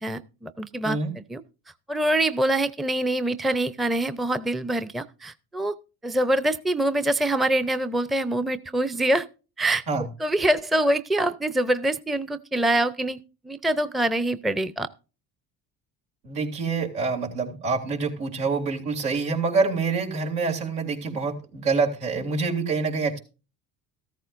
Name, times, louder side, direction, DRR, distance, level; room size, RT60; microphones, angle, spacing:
voice 1, 0.0-1.4 1.9-5.8 6.0-9.3 9.6-9.8 10.2-13.2 13.4-14.9, right 1 dB, ahead, 13 dB, 0.6 m, -25 dB
voice 2, 16.2-23.2, right 4 dB, 85° right, 0 dB, 3.0 m, -26 dB
14.0 x 13.5 x 2.6 m, 0.33 s
hypercardioid pair, 70°, 45 cm